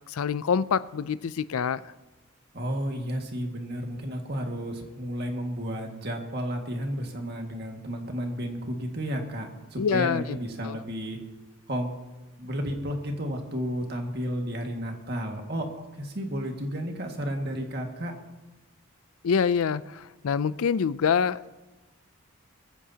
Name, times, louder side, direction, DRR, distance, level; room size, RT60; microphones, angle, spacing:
voice 1, 0.1-1.9 9.8-10.4 10.6-10.8 19.2-21.5, left 6 dB, 80° left, 18 dB, 0.4 m, -26 dB
voice 2, 2.5-11.2 11.7-11.9 12.4-18.1, equal, 50° right, 2 dB, 1.9 m, -32 dB
21.0 x 14.5 x 2.9 m, 1.1 s
head